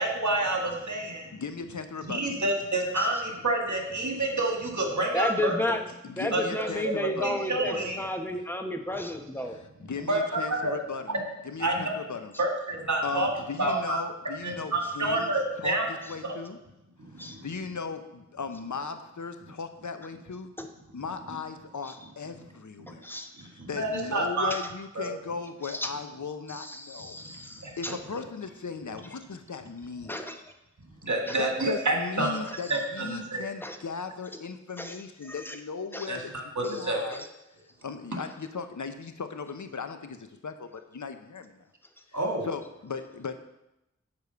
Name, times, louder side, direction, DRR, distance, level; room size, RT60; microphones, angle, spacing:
voice 1, 0.0-1.4 2.0-5.6 6.3-6.4 6.8-8.0 10.1-10.7 11.6-11.8 12.4-13.3 13.6-14.0 14.4-15.8 16.2-16.3 17.0-17.4 22.8-23.0 23.4-24.5 24.9-25.1 27.6-27.7 31.0-32.3 32.7-33.4 36.1-36.2 36.5-37.0 42.1-42.5, right 2 dB, 75° right, 1 dB, 1.7 m, -28 dB
voice 2, 1.3-2.4 6.0-7.5 9.4-12.3 13.0-15.3 15.6-16.6 17.4-20.5 20.9-23.2 23.5-27.2 27.8-30.3 31.4-37.2 37.8-41.6 42.4-43.3, left 5 dB, 80° left, 8 dB, 0.7 m, -37 dB
voice 3, 5.1-9.6 17.2-17.4 20.6-20.7 21.8-21.9 23.0-23.3 24.5-24.6 25.6-25.9 26.5-28.0 30.1-30.4 31.3-31.4 32.5-32.6 33.6-33.8 34.8-35.0 35.2-35.6 35.9-36.1 36.6-37.3, left 1 dB, 5° left, 5 dB, 0.9 m, -33 dB
7.0 x 4.8 x 6.8 m, 0.90 s
wide cardioid pair, 40°, 29 cm